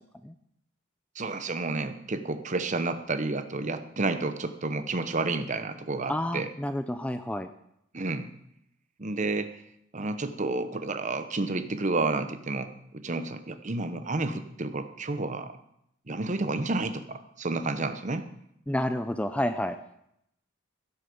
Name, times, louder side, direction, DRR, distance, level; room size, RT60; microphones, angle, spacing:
voice 1, 1.2-6.5 7.9-8.3 9.0-9.5 9.9-15.5 16.1-18.3, right 3 dB, 35° right, 10 dB, 0.9 m, -30 dB
voice 2, 6.1-7.5 18.7-19.8, left 1 dB, 5° left, 9 dB, 0.4 m, -29 dB
16.0 x 7.1 x 7.0 m, 0.77 s
head